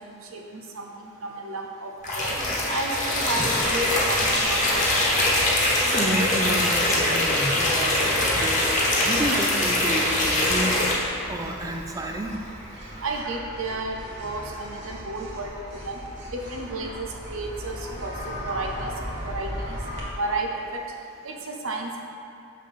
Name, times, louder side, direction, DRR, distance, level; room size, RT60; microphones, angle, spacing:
voice 1, 0.1-2.4 2.7-5.0 13.0-15.5 15.8-15.9 16.3-18.2 18.4-18.9 19.2-19.8 20.2-20.8 21.2-22.0, right 2 dB, 70° right, 2 dB, 0.7 m, -32 dB
sound 1, 2.0-10.9, left 1 dB, 35° left, 1.2 m, -23 dB
voice 2, 5.9-8.7 9.0-12.3, right 1 dB, 15° right, 3 dB, 0.4 m, -30 dB
sound 2, 10.5-20.0, equal, 55° right, 1.4 m, -37 dB
6.8 x 5.5 x 3.6 m, 2.5 s
head